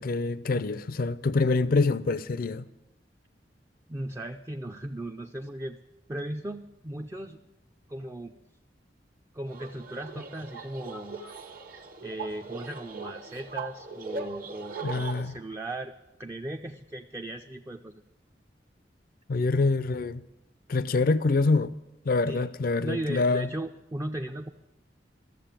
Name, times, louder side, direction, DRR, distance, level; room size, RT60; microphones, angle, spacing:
voice 1, 0.0-2.6 14.8-15.3 19.3-20.2 20.7-21.7 22.1-23.5, left 3 dB, 55° left, 0.5 m, -25 dB
voice 2, 3.9-5.8 6.1-7.4 7.9-8.3 9.3-11.2 12.0-15.9 16.2-18.0 22.3-22.4 22.8-24.5, right 1 dB, 15° right, 0.4 m, -37 dB
sound 1, 9.5-15.2, right 4 dB, 55° right, 1.1 m, -40 dB
13.5 x 7.5 x 8.8 m
head